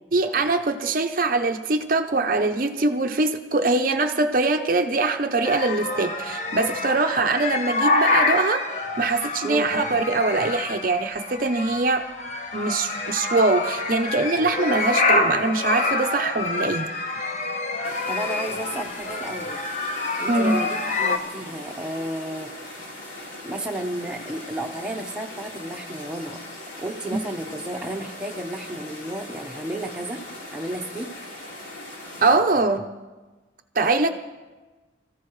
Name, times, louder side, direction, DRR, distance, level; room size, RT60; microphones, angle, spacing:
voice 1, 0.1-8.6 9.0-12.0 12.5-16.9 20.3-20.6 32.2-32.9 33.8-34.1, right 3 dB, 50° right, 6 dB, 0.7 m, -22 dB
sound 1, 5.4-21.2, left 3 dB, 40° left, 1.0 m, -27 dB
sound 2, 17.8-32.4, left 1 dB, 85° left, 4.0 m, -40 dB
voice 2, 18.1-19.7 20.2-22.5 23.4-26.4 26.8-30.2 30.5-31.3, right 1 dB, 5° right, 0 dB, 1.0 m, -32 dB
27.0 x 14.5 x 3.2 m, 1.2 s
head